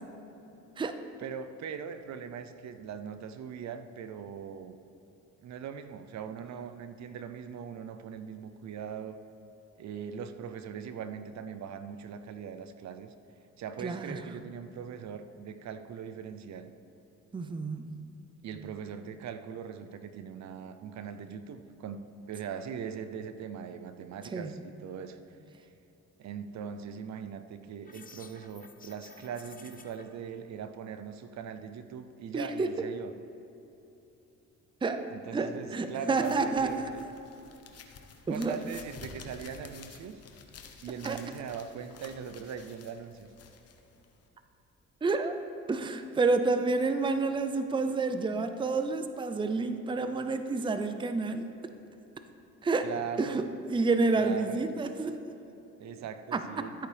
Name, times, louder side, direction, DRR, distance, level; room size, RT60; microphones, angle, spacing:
voice 1, 1.2-4.8 5.4-9.2 9.8-13.1 13.6-16.7 18.4-22.0 22.3-25.4 26.2-33.1 35.1-37.0 38.3-40.2 40.8-43.3 52.8-53.4 54.2-54.7 55.8-56.7, right 7 dB, 65° right, 10 dB, 0.6 m, -40 dB
voice 2, 13.8-14.3 17.3-17.9 24.3-24.5 32.3-32.9 34.8-36.9 38.3-38.6 41.0-41.2 45.0-45.4 45.7-51.5 52.6-52.9 53.2-55.3 56.3-56.7, right 3 dB, 15° right, 9 dB, 0.5 m, -29 dB
sound 1, 27.8-30.0, left 4 dB, 30° left, 0.9 m, -52 dB
sound 2, 36.1-44.3, left 5 dB, 55° left, 1.0 m, -51 dB
13.5 x 8.4 x 3.4 m, 3.0 s
cardioid pair, 90°, 30 cm